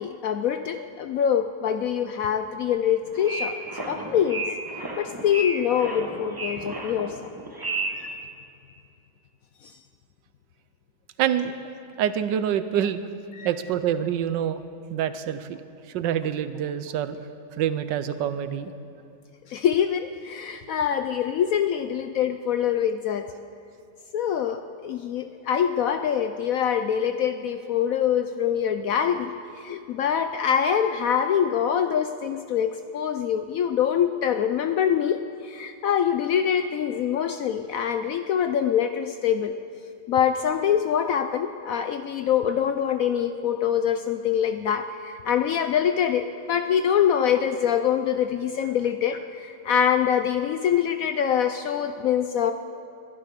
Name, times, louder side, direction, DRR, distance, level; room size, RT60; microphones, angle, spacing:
voice 1, 0.0-3.6 3.9-4.5 5.0-7.3 7.9-8.1 9.6-9.7 13.4-13.5 19.5-23.3 24.1-39.5 40.1-52.5, left 8 dB, 70° left, 8 dB, 0.8 m, -24 dB
sound 1, 3.0-8.1, right 2 dB, 15° right, 1.0 m, -32 dB
voice 2, 11.2-11.7 12.0-13.0 13.4-14.6 14.9-15.6 15.9-17.2 17.6-18.7, right 9 dB, 85° right, 12 dB, 1.4 m, -26 dB
21.5 x 11.5 x 5.1 m, 2.6 s
omnidirectional pair, 1.9 m